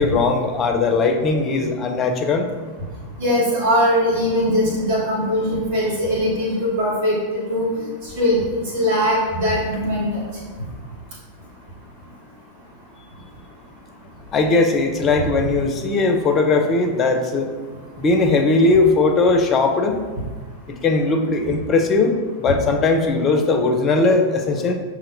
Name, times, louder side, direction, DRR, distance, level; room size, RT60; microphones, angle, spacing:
voice 1, 0.0-2.5 14.3-17.5 18.0-20.0 20.7-22.1 22.4-24.7, left 3 dB, 25° left, 5 dB, 0.4 m, -19 dB
voice 2, 3.2-7.2 7.5-8.4 8.7-10.2 22.4-22.5, equal, 55° right, -7 dB, 1.4 m, -20 dB
5.7 x 2.9 x 2.5 m, 1.4 s
figure-of-eight pair, 90°, 0 cm